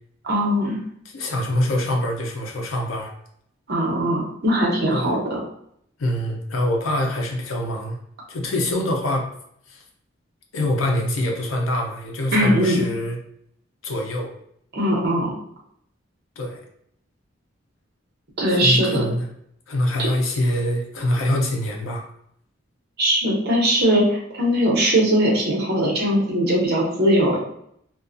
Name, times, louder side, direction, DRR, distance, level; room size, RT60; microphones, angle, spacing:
voice 1, 0.2-0.8 3.7-5.4 12.3-12.8 14.7-15.3 18.4-19.0 23.0-27.4, equal, 55° right, -2 dB, 0.8 m, -20 dB
voice 2, 1.1-3.1 4.9-5.1 6.0-8.0 8.3-9.3 9.7-9.8 10.5-13.2 13.8-14.3 16.4-16.6 18.6-19.3 19.7-22.1, left 1 dB, 85° left, 1 dB, 0.6 m, -24 dB
2.4 x 2.3 x 2.5 m, 0.69 s
head